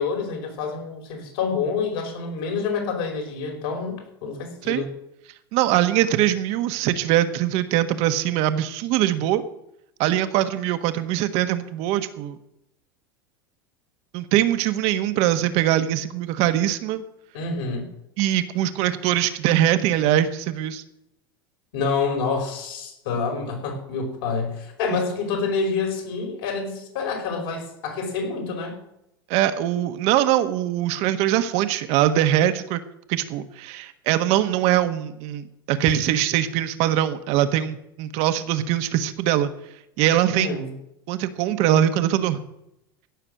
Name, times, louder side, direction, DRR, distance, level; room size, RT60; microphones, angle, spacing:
voice 1, 0.0-4.9 17.3-17.9 21.7-28.8 40.3-40.7, left 4 dB, 70° left, 3 dB, 5.3 m, -27 dB
voice 2, 5.5-9.4 10.0-12.4 14.1-17.0 18.2-20.8 29.3-32.8 33.1-39.5 40.0-40.6 41.1-42.4, right 12 dB, 60° right, 10 dB, 1.4 m, -22 dB
16.5 x 6.7 x 7.7 m, 0.81 s
hypercardioid pair, 90°, 13 cm